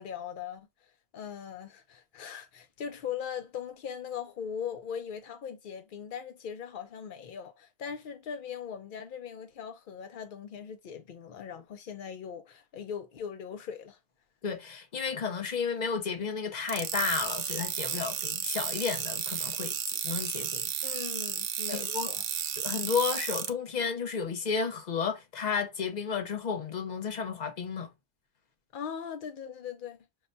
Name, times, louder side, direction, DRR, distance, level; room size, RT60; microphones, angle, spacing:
voice 1, 0.0-14.0 20.8-22.2 28.7-30.0, left 7 dB, 75° left, 0.4 m, -40 dB
voice 2, 14.4-19.8 20.0-20.7 21.7-22.1 22.6-27.9, left 6 dB, 40° left, 0.7 m, -32 dB
sound 1, 16.7-23.5, right 9 dB, 65° right, 0.7 m, -33 dB
6.3 x 2.2 x 2.6 m
omnidirectional pair, 1.4 m